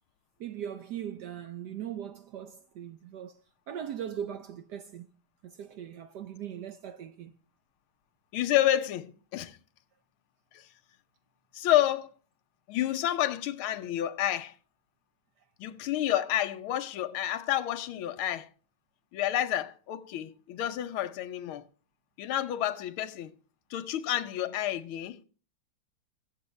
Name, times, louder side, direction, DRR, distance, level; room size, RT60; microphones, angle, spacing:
voice 1, 0.4-3.4 3.7-5.1 5.4-7.3, right 9 dB, 70° right, 1.0 m, -39 dB
voice 2, 8.3-9.6 10.5-10.7 11.5-12.1 12.7-14.5 15.6-18.5 19.1-21.6 22.2-23.3 23.7-25.2, left 12 dB, 80° left, 1.6 m, -29 dB
22.5 x 7.6 x 3.2 m
omnidirectional pair, 2.3 m